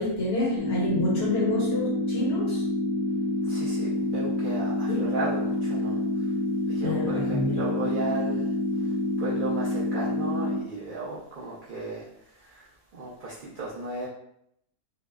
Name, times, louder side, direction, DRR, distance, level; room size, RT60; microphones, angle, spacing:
voice 1, 0.0-2.6 4.9-5.1 6.8-7.6, left 1 dB, 60° left, -3 dB, 0.7 m, -28 dB
sound 1, 0.6-10.6, left 1 dB, 90° left, 1.1 m, -27 dB
voice 2, 3.4-6.0 6.7-8.5 9.2-12.1 12.4-12.7 12.9-14.1, right 2 dB, 90° right, -6 dB, 0.4 m, -35 dB
2.7 x 2.1 x 2.2 m, 0.73 s
omnidirectional pair, 1.5 m